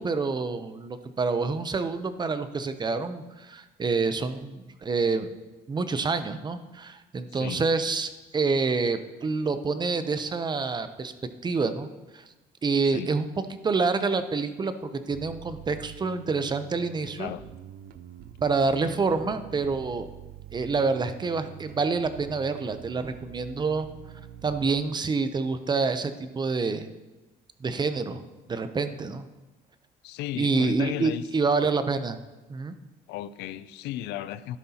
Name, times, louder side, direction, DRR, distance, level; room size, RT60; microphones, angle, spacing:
voice 1, 0.0-5.3 5.7-11.1 11.4-11.9 12.1-12.2 12.6-13.3 13.6-17.3 18.4-20.1 20.5-23.9 24.4-26.9 27.6-28.2 28.5-29.2 30.3-32.2 32.5-32.7, right 4 dB, 25° right, 10 dB, 0.6 m, -27 dB
voice 2, 7.3-7.6 12.9-13.1 17.2-17.4 30.0-31.3 33.1-34.6, left 13 dB, 85° left, 15 dB, 0.4 m, -35 dB
Bass guitar, 15.1-24.7, right 10 dB, 65° right, 0.5 m, -45 dB
12.5 x 11.0 x 2.9 m, 1.1 s
cardioid pair, 110°, 17 cm